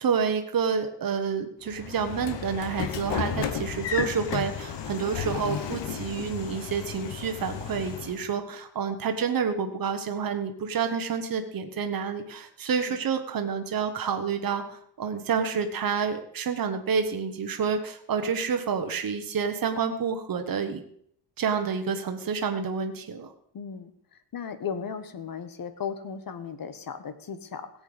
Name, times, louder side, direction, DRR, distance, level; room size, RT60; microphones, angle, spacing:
voice 1, 0.0-20.8 21.4-23.3, right 6 dB, 55° right, 6 dB, 1.2 m, -29 dB
Train / Sliding door, 1.7-8.3, left 7 dB, 80° left, 1.3 m, -33 dB
voice 2, 23.5-23.9 24.3-27.7, left 7 dB, 55° left, 11 dB, 1.1 m, -36 dB
17.0 x 8.1 x 5.1 m, 0.64 s
wide cardioid pair, 150°, 42 cm